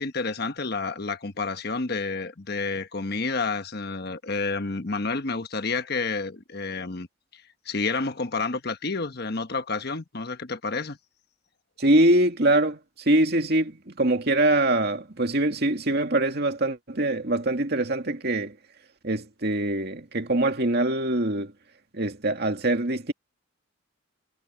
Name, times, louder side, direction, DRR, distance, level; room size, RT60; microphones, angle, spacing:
voice 1, 0.0-7.1 7.3-11.0, left 4 dB, 50° left, 1.2 m, -30 dB
voice 2, 11.8-18.6 19.0-21.5 21.9-23.1, right 1 dB, 50° right, 2.3 m, -23 dB
head